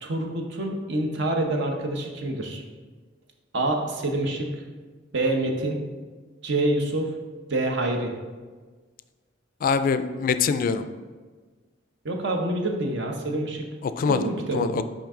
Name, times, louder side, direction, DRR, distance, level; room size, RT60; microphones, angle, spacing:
voice 1, 0.0-2.6 3.5-4.5 5.1-5.8 6.4-7.1 7.5-8.1 12.0-13.7 14.1-14.8, right 2 dB, 65° right, 2 dB, 0.8 m, -26 dB
voice 2, 9.6-10.8 13.8-14.3 14.5-14.8, left 5 dB, 45° left, 11 dB, 0.3 m, -23 dB
5.8 x 5.2 x 3.7 m, 1.4 s
head